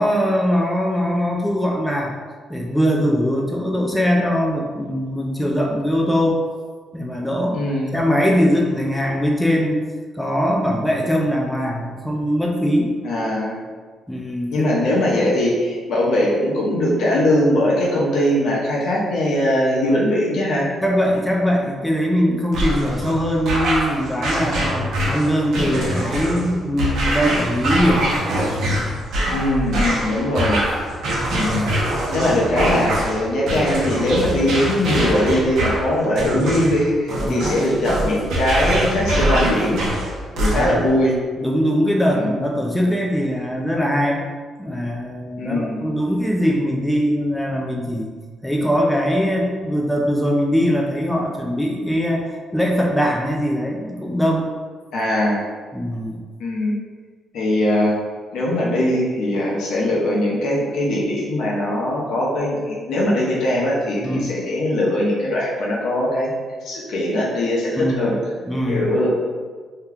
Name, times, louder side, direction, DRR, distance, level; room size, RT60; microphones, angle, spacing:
voice 1, 0.0-2.2 2.5-6.4 6.9-7.6 7.9-9.8 10.2-13.0 14.1-14.7 20.8-28.1 37.2-37.4 40.5-40.9 41.4-44.2 44.6-48.1 48.4-54.5 55.7-56.2 64.0-64.3 67.8-68.2 68.5-69.0, equal, 5° left, -1 dB, 0.4 m, -21 dB
voice 2, 7.5-7.9 13.0-13.6 14.5-20.7 29.3-30.6 31.4-31.7 31.9-39.8 40.3-41.1 42.2-42.3 45.4-45.8 54.9-55.5 56.4-56.7 57.3-57.9 58.3-66.3 66.6-68.1 68.7-69.1, left 1 dB, 75° left, -4 dB, 0.8 m, -20 dB
sound 1, 22.5-40.9, right 1 dB, 75° right, 0.7 m, -23 dB
2.8 x 2.3 x 3.5 m, 1.5 s
cardioid pair, 90°, 0 cm